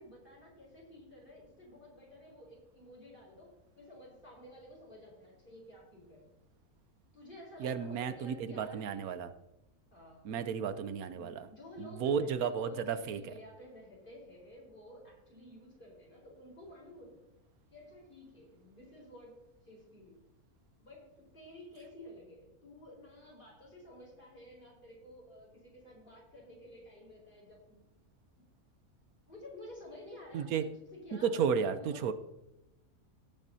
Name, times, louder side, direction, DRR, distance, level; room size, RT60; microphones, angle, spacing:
voice 1, 0.0-3.5 3.8-6.3 7.1-9.2 9.9-10.4 11.1-17.2 17.7-20.2 20.8-27.8 29.2-32.1, left 1 dB, 35° left, -2 dB, 4.6 m, -52 dB
voice 2, 7.6-9.3 10.2-11.5 11.8-13.2 30.3-30.6 31.2-32.1, right 7 dB, 80° right, 11 dB, 1.2 m, -33 dB
17.5 x 9.0 x 2.7 m, 0.94 s
omnidirectional pair, 1.5 m